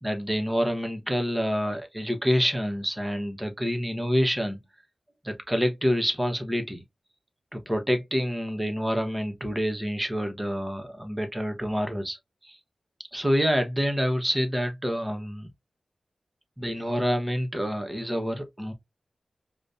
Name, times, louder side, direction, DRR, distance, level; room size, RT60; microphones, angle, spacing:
voice 1, 0.0-4.6 5.2-6.8 7.5-12.2 12.4-12.6 13.1-15.5 16.6-18.7, equal, 15° right, 1.1 m, -27 dB
5.0 x 2.2 x 2.6 m
wide cardioid pair, 75°, 0 cm